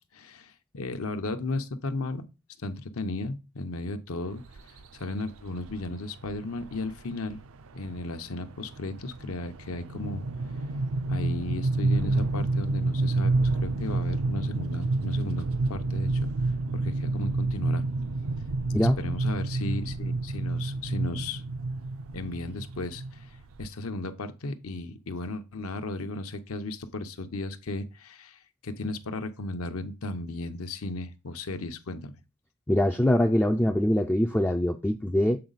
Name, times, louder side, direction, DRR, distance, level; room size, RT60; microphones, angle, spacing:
voice 1, 0.1-2.3 2.6-4.4 4.9-7.4 7.7-10.2 11.1-16.3 16.7-17.9 18.8-21.4 22.1-23.3 23.6-32.1 33.7-33.8, left 2 dB, 70° left, 0.8 m, -35 dB
sound 1, 4.6-4.8 5.7-5.8 6.2-6.3 6.6-6.9 7.3-23.7, right 2 dB, 65° right, 0.5 m, -29 dB
voice 2, 32.7-35.4, left 1 dB, 10° left, 0.3 m, -23 dB
7.7 x 4.0 x 4.0 m
head